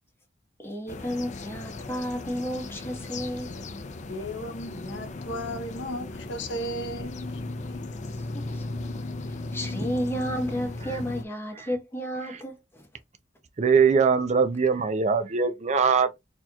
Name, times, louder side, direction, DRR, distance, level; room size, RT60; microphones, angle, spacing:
voice 1, 0.6-3.5 8.1-8.6 9.3-12.9, equal, 15° left, 1.1 m, -32 dB
sound 1, 0.9-11.2, left 2 dB, 40° left, 0.5 m, -36 dB
voice 2, 4.1-7.4, equal, 70° left, 0.8 m, -35 dB
voice 3, 13.6-16.2, right 5 dB, 40° right, 0.5 m, -21 dB
4.3 x 2.9 x 2.3 m
head